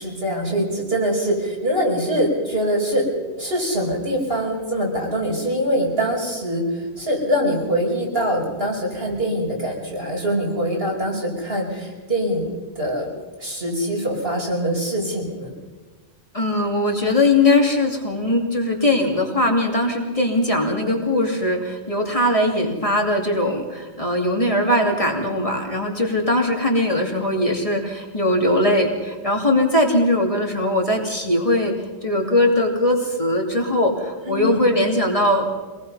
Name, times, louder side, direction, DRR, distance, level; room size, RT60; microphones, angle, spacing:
voice 1, 0.0-3.1 3.4-12.5 12.8-13.1 13.4-15.5 17.8-17.9 34.3-34.6, equal, 65° right, -1 dB, 5.7 m, -23 dB
voice 2, 16.3-31.7 32.0-35.5, left 1 dB, 30° left, 0 dB, 2.8 m, -20 dB
25.5 x 19.5 x 5.6 m, 1.3 s
omnidirectional pair, 1.1 m